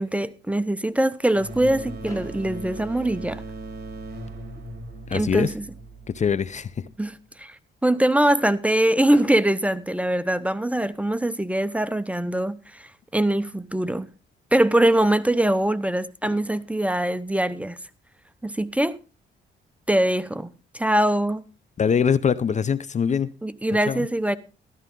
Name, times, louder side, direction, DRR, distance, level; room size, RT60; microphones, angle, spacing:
voice 1, 0.0-3.4 5.1-5.6 7.0-14.1 14.5-17.8 18.4-19.0 19.9-21.4 23.4-24.4, right 1 dB, 5° right, 0.8 m, -23 dB
sound 1, 1.3-6.8, right 2 dB, 55° right, 3.8 m, -38 dB
Fireworks, 2.0-4.1 4.9-5.0 5.2-5.4 5.7-5.8 9.1-10.9 12.6-12.7 15.8-15.9 16.2-18.5, left 2 dB, 15° left, 3.2 m, -49 dB
voice 2, 5.1-5.5 6.1-6.9 21.8-23.3 23.9-24.1, left 7 dB, 35° left, 0.6 m, -23 dB
13.0 x 12.5 x 3.7 m
cardioid pair, 90°, 20 cm